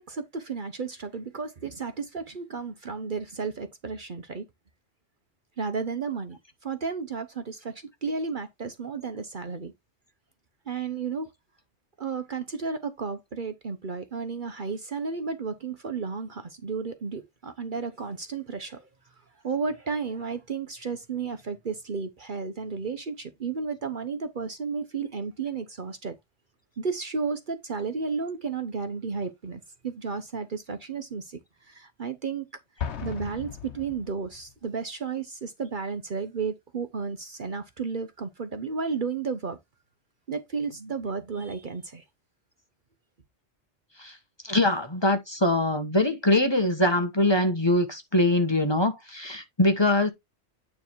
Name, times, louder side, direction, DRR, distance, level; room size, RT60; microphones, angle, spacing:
voice 1, 0.0-4.4 5.6-9.7 10.7-11.3 12.0-18.9 19.4-26.2 26.8-31.4 31.7-32.5 33.0-39.6 40.3-42.0, right 5 dB, 45° right, 1.0 m, -33 dB
Explosion, 32.8-34.6, left 8 dB, 70° left, 1.3 m, -36 dB
voice 2, 44.4-50.1, left 1 dB, 25° left, 1.2 m, -23 dB
9.4 x 3.4 x 4.5 m
omnidirectional pair, 1.2 m